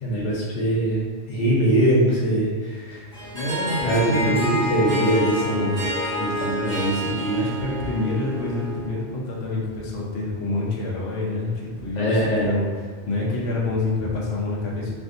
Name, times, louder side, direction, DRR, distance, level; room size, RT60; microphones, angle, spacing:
voice 1, 0.0-1.0 1.3-3.0 3.8-5.7 6.2-7.4 11.9-12.5, right 1 dB, 90° left, -5 dB, 1.1 m, -22 dB
Harp, 3.1-8.9, left 1 dB, 60° right, 1.5 m, -28 dB
voice 2, 3.3-5.2 5.5-5.8 7.3-12.7 13.1-14.9, left 2 dB, 60° left, -5 dB, 0.9 m, -27 dB
3.4 x 2.5 x 2.5 m, 1.5 s
omnidirectional pair, 1.2 m